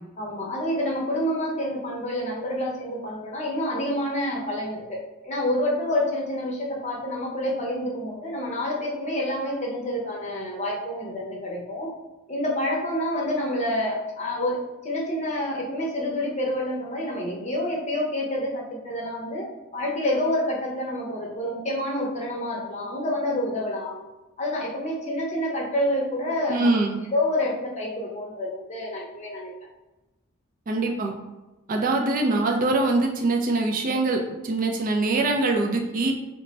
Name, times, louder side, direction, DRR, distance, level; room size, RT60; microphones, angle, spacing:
voice 1, 0.2-11.9 12.3-19.5 19.7-24.0 24.4-26.8 27.1-29.5, left 1 dB, 35° left, -2 dB, 0.6 m, -28 dB
voice 2, 26.5-27.0 30.7-31.1 31.7-36.1, right 2 dB, 40° right, 2 dB, 0.3 m, -23 dB
3.1 x 2.2 x 3.9 m, 1.1 s
head